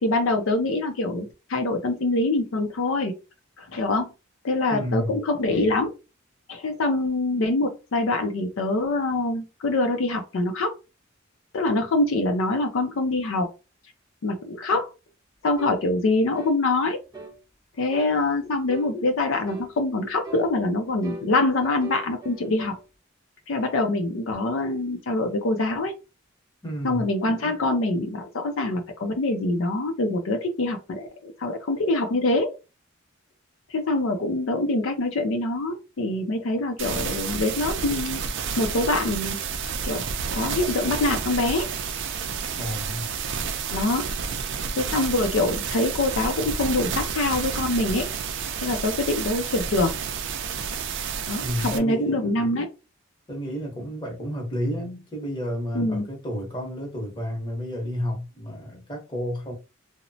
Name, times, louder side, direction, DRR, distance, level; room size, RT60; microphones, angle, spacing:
voice 1, 0.0-3.1 3.6-4.1 4.4-5.9 6.5-10.7 11.5-13.5 14.2-14.9 15.4-17.0 17.8-22.8 23.5-25.9 26.8-32.5 33.7-38.2 38.6-39.4 39.9-40.0 40.3-41.7 43.7-44.1 44.8-48.1 48.6-49.9 51.3-52.7 55.7-56.1, left 2 dB, 75° left, 0.4 m, -24 dB
voice 2, 4.7-5.2 26.6-27.0 42.5-43.1 51.4-52.4 53.3-59.5, equal, 20° left, 0.9 m, -31 dB
sound 1, 15.6-15.8 16.3-16.6 17.1-17.4 17.9-18.2 18.7-18.9 19.5-19.7 20.2-20.5 21.0-22.8, right 1 dB, 20° right, 0.6 m, -39 dB
sound 2, 36.8-51.8, right 6 dB, 60° right, 0.4 m, -30 dB
2.9 x 2.0 x 2.6 m
head